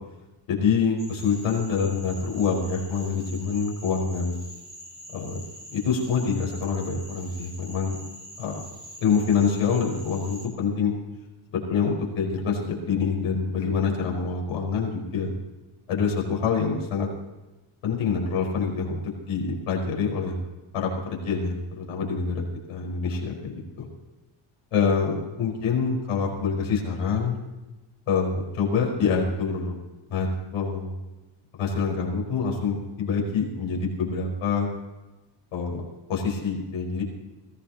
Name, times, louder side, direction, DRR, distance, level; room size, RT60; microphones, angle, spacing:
voice 1, 0.5-4.3 5.1-5.4 5.7-8.0 8.4-8.6 9.0-10.9 11.5-15.3 15.9-17.1 17.8-20.4 20.7-23.9 24.7-27.4 28.1-29.8 30.1-31.0 31.6-34.7 35.5-35.8 36.1-37.0, left 5 dB, 90° left, -1 dB, 5.2 m, -26 dB
Cricket / Frog, 1.0-10.5, equal, 20° right, 3.6 m, -44 dB
22.0 x 16.0 x 3.0 m, 1.1 s
cardioid pair, 115°, 50 cm